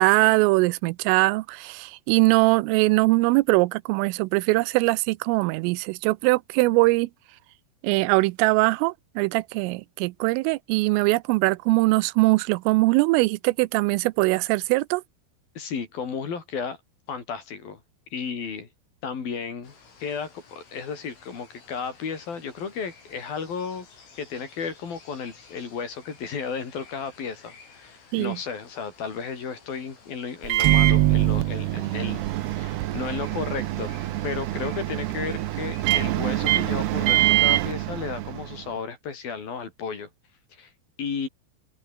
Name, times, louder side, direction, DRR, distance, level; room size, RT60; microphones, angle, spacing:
voice 1, 0.0-7.1 7.8-15.0 28.1-28.4, right 23 dB, 90° right, 3.3 m, -21 dB
voice 2, 15.6-16.8 17.1-17.8 18.1-18.7 19.0-19.7 20.0-23.9 24.2-32.2 32.6-34.0 34.2-40.1 40.5-40.7 41.0-41.3, left 6 dB, 50° left, 5.5 m, -33 dB
sound 1, 19.6-37.1, left 5 dB, 75° left, 10.5 m, -53 dB
Microwave oven, 30.4-38.6, right 15 dB, 70° right, 2.7 m, -24 dB
open air
omnidirectional pair, 5.7 m